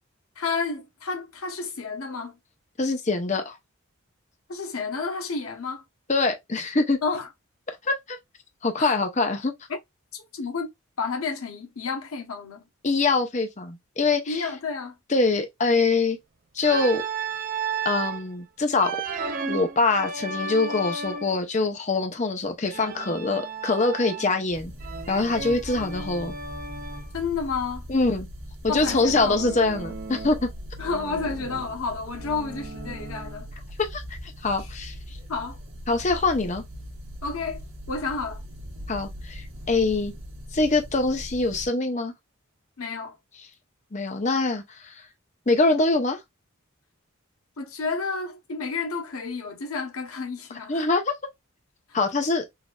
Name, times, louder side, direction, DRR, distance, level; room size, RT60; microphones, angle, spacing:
voice 1, 0.4-2.3 4.5-5.8 7.0-7.3 8.8-9.0 10.1-10.7 11.0-12.7 14.3-14.9 27.1-27.9 28.7-29.4 30.8-33.5 34.6-34.7 35.3-35.6 37.2-38.4 42.8-43.2 47.6-50.9, left 4 dB, 85° left, 1.0 m, -31 dB
voice 2, 2.8-3.6 6.1-7.0 7.8-8.2 8.6-9.5 12.8-14.5 15.1-16.2 16.5-17.0 17.8-19.0 19.4-24.7 25.1-26.3 27.9-28.3 28.6-30.5 33.8-34.9 35.9-36.6 38.9-40.1 40.5-42.1 43.9-45.0 45.5-46.2 50.7-51.1 51.9-52.4, left 3 dB, 35° left, 0.7 m, -24 dB
Organ, 16.6-18.2 18.8-21.4 22.7-24.4 24.8-27.1 28.7-30.5 30.8-33.5, right 4 dB, 40° right, 0.5 m, -34 dB
sound 1, 24.5-41.7, equal, 70° right, 1.5 m, -40 dB
4.1 x 2.6 x 2.3 m
head